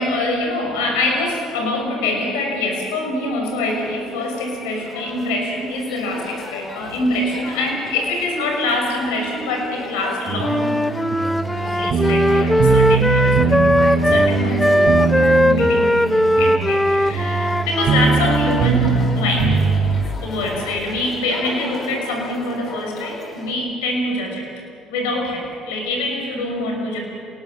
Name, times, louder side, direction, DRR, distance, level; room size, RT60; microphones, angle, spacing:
voice 1, 0.0-10.7 11.6-19.6 20.2-24.5 24.9-27.0, left 2 dB, 85° left, 1 dB, 5.9 m, -24 dB
sound 1, 3.7-23.5, left 2 dB, 40° left, 4.6 m, -36 dB
sound 2, 10.3-20.0, right 5 dB, 55° right, 3.6 m, -21 dB
Wind instrument woodwind instrument, 10.4-18.7, equal, 5° left, 0.6 m, -18 dB
26.5 x 19.0 x 7.5 m, 2.6 s
hypercardioid pair, 70°, 0 cm